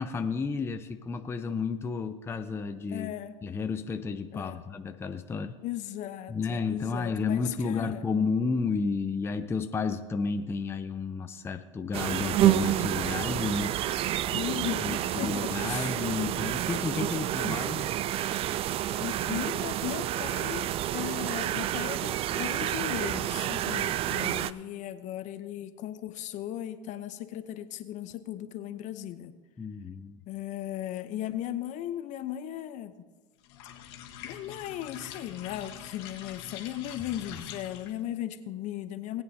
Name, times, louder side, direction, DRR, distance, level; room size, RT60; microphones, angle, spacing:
voice 1, 0.0-3.1 3.4-5.6 6.3-13.8 14.8-17.9 29.6-30.2, left 4 dB, 15° left, 7 dB, 0.6 m, -32 dB
voice 2, 2.9-3.3 4.3-4.6 5.6-8.1 14.3-16.0 19.0-29.3 30.3-32.9 34.2-39.2, left 12 dB, 50° left, 11 dB, 0.8 m, -37 dB
sound 1, 11.9-24.5, right 12 dB, 35° right, 0.4 m, -29 dB
sound 2, 33.4-38.1, left 10 dB, 65° left, 1.5 m, -44 dB
19.5 x 8.9 x 2.8 m, 1.3 s
hypercardioid pair, 100°, 16 cm